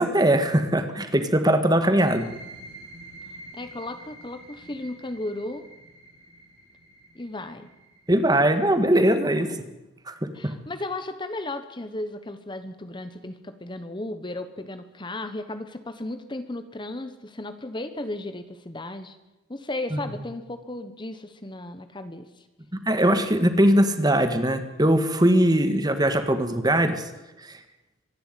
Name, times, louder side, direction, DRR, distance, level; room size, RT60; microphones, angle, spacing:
voice 1, 0.0-2.3 8.1-9.5 10.1-10.2 22.7-27.0, right 1 dB, 20° right, 9 dB, 1.6 m, -20 dB
sound 1, 1.8-9.3, right 2 dB, 60° right, 7.6 m, -47 dB
voice 2, 3.5-5.6 7.1-7.7 9.4-9.7 10.3-19.2 19.5-22.4, left 2 dB, 25° left, 10 dB, 1.2 m, -35 dB
24.0 x 11.5 x 9.2 m, 1.0 s
head